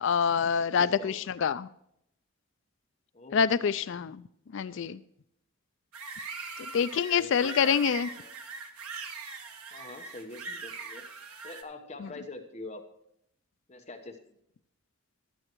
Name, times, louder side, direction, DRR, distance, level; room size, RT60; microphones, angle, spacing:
voice 1, 0.0-1.7 3.3-4.2 4.5-5.0 6.7-8.1, left 7 dB, 55° left, 14 dB, 0.3 m, -26 dB
voice 2, 0.6-1.4 3.1-3.6 4.5-4.9 7.1-8.3 9.7-11.0 11.4-12.8 13.7-14.2, left 2 dB, 30° left, 5 dB, 1.0 m, -45 dB
sound 1, 5.9-11.6, right 4 dB, 80° right, 1.5 m, -41 dB
15.5 x 12.0 x 3.0 m, 0.73 s
head